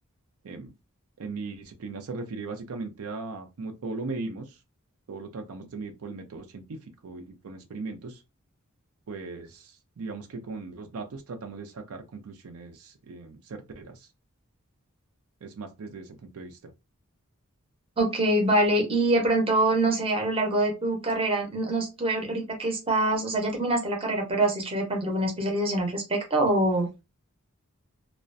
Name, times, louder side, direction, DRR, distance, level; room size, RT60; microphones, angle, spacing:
voice 1, 1.2-4.6 5.1-8.2 9.1-14.1 15.4-16.7, right 3 dB, 75° right, 0.4 m, -38 dB
voice 2, 18.0-26.9, right 1 dB, 25° right, 0.7 m, -25 dB
2.4 x 2.1 x 2.5 m
head